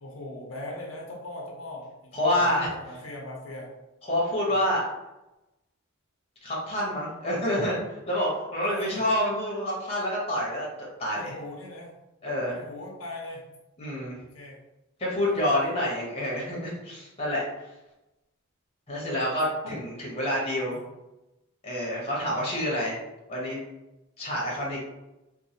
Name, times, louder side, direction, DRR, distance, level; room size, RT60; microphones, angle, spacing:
voice 1, 0.0-3.7 8.6-9.1 10.8-12.0 12.5-13.4 13.8-14.6 15.2-15.6 19.6-19.7 20.2-20.3 20.7-20.8, left 1 dB, 75° left, -2 dB, 0.6 m, -41 dB
voice 2, 2.1-2.7 4.1-4.8 6.4-10.7 11.0-11.3 12.2-12.6 13.8-14.2 15.0-17.4 18.9-20.8 21.6-23.0 23.3-23.6 24.2-24.8, left 1 dB, 30° left, -4 dB, 0.8 m, -27 dB
3.1 x 2.1 x 2.7 m, 0.97 s
head